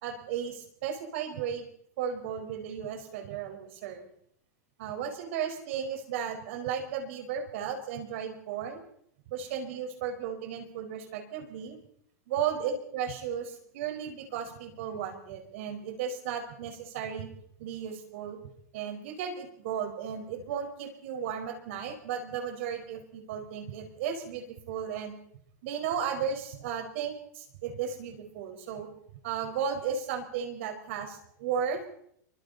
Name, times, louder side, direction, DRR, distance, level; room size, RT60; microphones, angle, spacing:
voice 1, 0.0-1.7 2.0-4.1 4.8-8.8 9.3-11.8 12.3-17.3 17.6-18.4 18.7-25.1 25.6-28.9 29.2-31.8, right 7 dB, 50° right, 4 dB, 5.0 m, -35 dB
28.0 x 24.5 x 4.2 m, 0.68 s
supercardioid pair, 175°, 9 cm